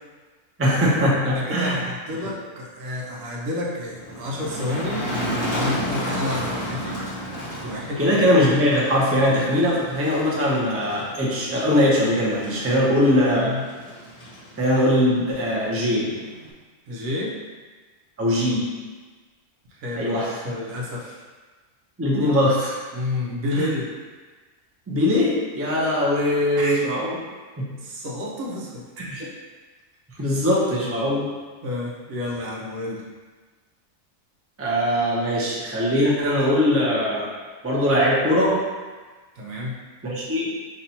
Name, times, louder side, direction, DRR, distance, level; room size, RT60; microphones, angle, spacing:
voice 1, 0.6-1.8 7.6-13.4 14.6-16.1 18.2-18.7 20.0-20.4 22.0-22.8 23.5-23.6 24.9-27.2 27.6-27.7 29.0-29.2 30.2-31.3 34.6-37.3 37.6-38.6 40.0-40.5, left 1 dB, 15° right, -5 dB, 0.5 m, -21 dB
voice 2, 1.2-5.1 5.5-7.1 7.6-8.0 12.6-12.9 13.2-13.6 16.9-17.4 19.7-21.2 22.9-23.9 26.6-26.8 27.8-28.8 29.2-29.3 30.2-30.3 31.6-33.1 39.3-39.7, left 2 dB, 85° right, -4 dB, 1.2 m, -30 dB
Motor vehicle (road), 3.8-16.5, equal, 30° left, 0.7 m, -33 dB
5.5 x 2.9 x 2.8 m, 1.4 s
omnidirectional pair, 1.4 m